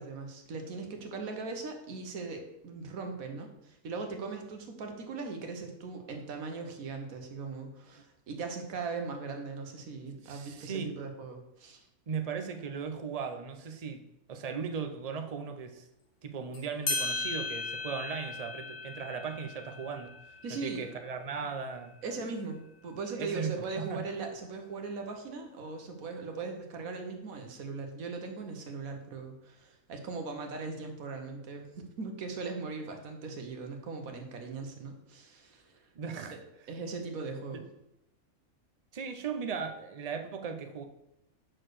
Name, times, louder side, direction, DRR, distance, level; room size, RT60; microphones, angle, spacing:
voice 1, 0.0-11.9 20.4-20.9 22.0-35.8 36.7-37.6, right 4 dB, 75° right, 4 dB, 1.5 m, -39 dB
voice 2, 10.2-11.0 12.1-15.9 16.2-20.2 20.5-22.0 23.1-23.5 23.8-24.0 35.9-36.4 37.5-37.6 38.9-40.8, right 6 dB, 45° right, 6 dB, 0.5 m, -37 dB
sound 1, 16.5-16.6 16.9-22.0, left 3 dB, 60° left, 1.7 m, -37 dB
6.1 x 4.5 x 6.4 m, 0.85 s
omnidirectional pair, 1.5 m